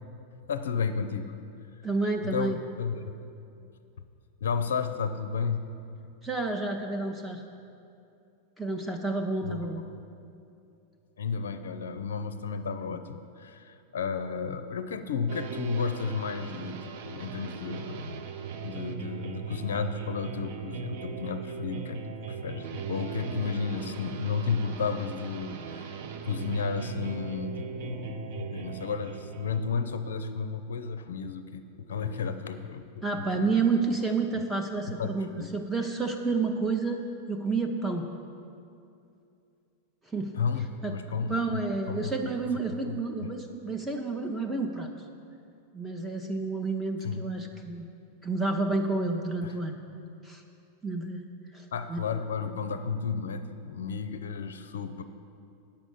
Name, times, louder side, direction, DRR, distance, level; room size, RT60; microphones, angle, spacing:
voice 1, 0.5-1.3 2.2-3.1 4.4-5.7 9.4-9.7 11.2-18.2 18.6-33.5 34.3-34.4 34.9-35.5 40.3-41.6 41.9-43.3 47.0-47.3 49.4-49.6 51.7-55.0, left 5 dB, 60° left, 10 dB, 0.5 m, -33 dB
voice 2, 1.8-2.6 6.2-7.4 8.6-9.9 33.0-38.0 40.1-40.3 40.8-40.9 41.3-44.9 45.7-47.8 48.2-49.8 50.2-50.4 50.8-51.3 51.5-51.6 51.9-52.0, right 3 dB, 10° right, 2 dB, 0.7 m, -30 dB
sound 1, 15.3-29.7, right 6 dB, 50° right, 0.6 m, -39 dB
8.5 x 6.1 x 8.1 m, 2.6 s
figure-of-eight pair, 90°, 0 cm